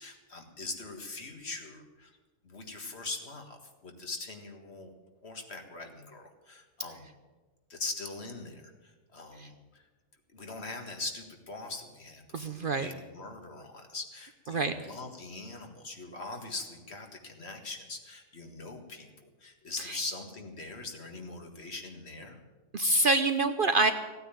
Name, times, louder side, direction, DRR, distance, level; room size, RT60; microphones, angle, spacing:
voice 1, 0.0-2.1 2.4-4.9 5.2-7.1 7.7-9.9 10.3-19.1 19.4-22.4, left 3 dB, 50° left, 4 dB, 2.0 m, -42 dB
voice 2, 12.3-12.9 14.5-14.7 22.7-23.9, right 2 dB, 50° right, 9 dB, 0.8 m, -25 dB
16.0 x 9.3 x 9.0 m, 1.3 s
omnidirectional pair, 1.4 m